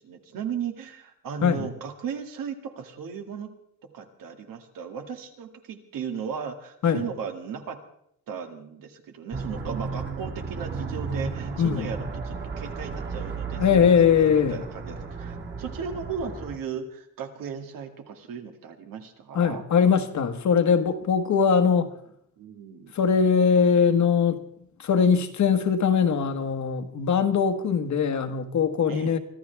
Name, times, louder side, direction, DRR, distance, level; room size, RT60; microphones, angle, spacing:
voice 1, 0.0-3.5 3.9-7.8 8.3-19.6 22.4-22.9 28.9-29.2, right 7 dB, 80° right, 2.2 m, -36 dB
sound 1, 9.3-16.6, right 4 dB, 35° right, 2.1 m, -34 dB
voice 2, 11.6-11.9 13.6-14.6 19.3-21.9 22.9-24.4 24.8-29.2, left 6 dB, 60° left, 1.4 m, -21 dB
24.5 x 13.5 x 3.5 m
cardioid pair, 140°, 33 cm